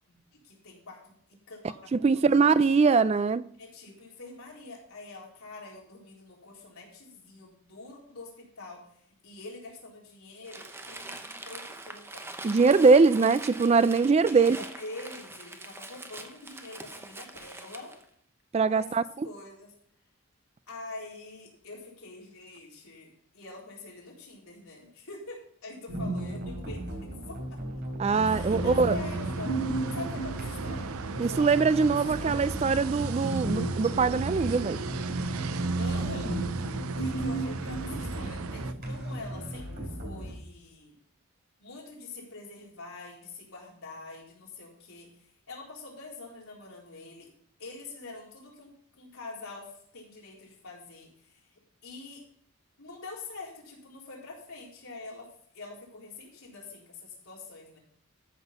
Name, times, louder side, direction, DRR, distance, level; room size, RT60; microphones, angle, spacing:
voice 1, 0.3-1.2 1.5-2.5 3.6-8.8 9.2-12.2 14.2-18.0 18.7-19.7 20.7-27.6 28.2-31.9 32.2-32.5 35.8-36.6 37.0-41.0 41.6-45.1 45.5-47.3 47.6-51.4 51.8-52.2 52.8-55.3 55.5-57.8, left 3 dB, 75° left, 4.1 m, -45 dB
voice 2, 1.9-3.4 12.4-14.6 18.5-19.0 28.0-28.9 31.2-34.8, right 4 dB, 30° right, 0.3 m, -22 dB
Crumpling crinkling, 10.4-18.0, right 2 dB, 10° right, 0.8 m, -43 dB
sound 1, 25.9-40.4, right 1 dB, 50° right, 3.5 m, -35 dB
sound 2, 28.1-38.7, right 3 dB, 85° right, 0.6 m, -35 dB
13.5 x 6.1 x 5.5 m
head